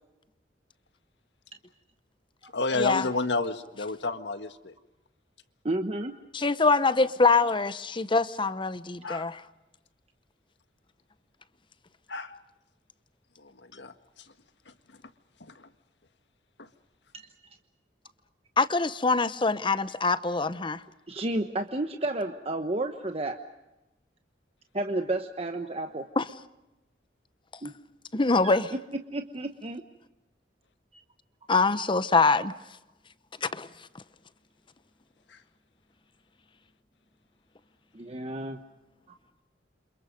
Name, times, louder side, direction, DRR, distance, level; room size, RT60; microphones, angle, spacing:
voice 1, 2.4-4.7 9.0-9.3 12.1-12.3 13.4-14.3 14.7-14.8 15.5-15.7 16.6-16.7 35.3-35.4, left 3 dB, 80° left, 1.7 m, -31 dB
voice 2, 5.6-6.2 17.1-17.3 21.1-23.4 24.7-26.1 27.6-27.7 28.4-29.8 37.9-38.6, right 2 dB, 35° right, 1.2 m, -31 dB
voice 3, 6.3-9.4 18.6-20.8 26.2-26.3 28.1-28.7 31.5-32.5 33.4-33.7, left 3 dB, 30° left, 0.9 m, -24 dB
29.5 x 27.5 x 5.2 m
head